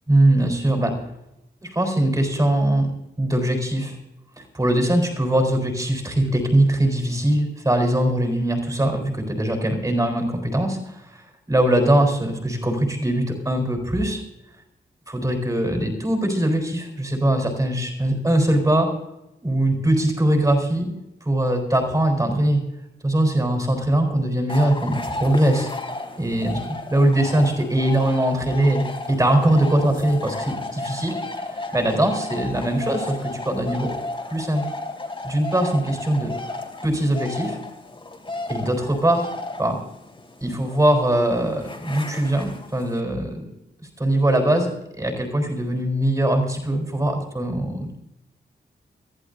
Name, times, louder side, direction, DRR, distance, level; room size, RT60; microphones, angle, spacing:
voice 1, 0.1-0.9 1.6-2.9 3.2-4.0 4.4-14.2 15.1-18.9 19.4-20.9 21.2-22.6 23.0-25.7 26.2-33.9 34.3-34.7 35.2-36.4 36.8-37.6 38.5-39.3 39.6-39.8 40.4-43.5 43.8-47.9, right 1 dB, 20° right, 4 dB, 4.2 m, -21 dB
sound 1, 24.5-43.0, left 2 dB, 30° left, 2.7 m, -33 dB
23.5 x 15.0 x 2.7 m, 0.87 s
wide cardioid pair, 135°, 19 cm